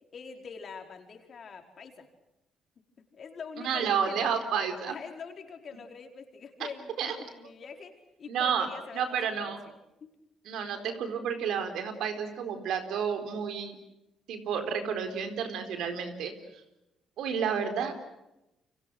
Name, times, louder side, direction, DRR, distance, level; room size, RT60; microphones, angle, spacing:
voice 1, 0.1-2.1 3.0-4.3 4.8-9.5 10.0-10.1, left 5 dB, 50° left, 4 dB, 4.7 m, -44 dB
voice 2, 3.6-5.0 7.0-7.1 8.3-8.7 8.9-9.6 10.4-13.8 14.3-16.3 17.2-17.9, right 7 dB, 75° right, 7 dB, 4.2 m, -30 dB
29.5 x 25.5 x 6.4 m, 0.92 s
supercardioid pair, 75°, 0 cm